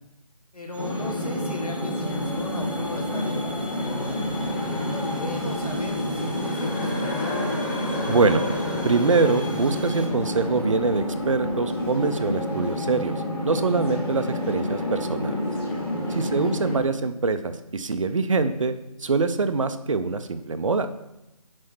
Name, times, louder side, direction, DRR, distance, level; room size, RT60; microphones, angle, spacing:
voice 1, 0.5-4.2 4.8-7.5 16.2-16.6, left 2 dB, 75° left, 3 dB, 1.7 m, -37 dB
sound 1, 0.7-10.1, equal, 15° right, 0.4 m, -38 dB
sound 2, 0.8-16.8, left 1 dB, 40° left, 2.4 m, -29 dB
Race car auto racing, 2.2-12.2, left 2 dB, 15° left, 0.8 m, -36 dB
voice 2, 8.1-8.4 8.8-13.1 13.4-15.4 16.1-18.7 19.0-20.9, right 4 dB, 55° right, 10 dB, 0.6 m, -24 dB
6.3 x 4.3 x 6.0 m, 0.91 s
figure-of-eight pair, 165°, 19 cm